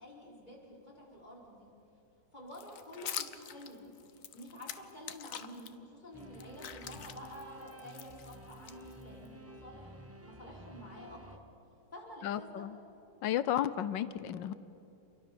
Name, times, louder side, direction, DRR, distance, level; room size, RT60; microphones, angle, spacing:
voice 1, 0.0-1.7 2.3-3.8 4.1-11.4 11.9-12.7, equal, 25° left, -4 dB, 5.5 m, -50 dB
sound 1, 2.5-5.7 6.2-9.3, left 9 dB, 55° left, 1.1 m, -45 dB
sound 2, 6.1-11.4, right 1 dB, 15° right, 0.6 m, -52 dB
voice 2, 12.2-12.8 13.2-14.5, left 11 dB, 80° left, 14 dB, 1.4 m, -33 dB
28.5 x 23.0 x 7.0 m, 2.9 s
omnidirectional pair, 2.0 m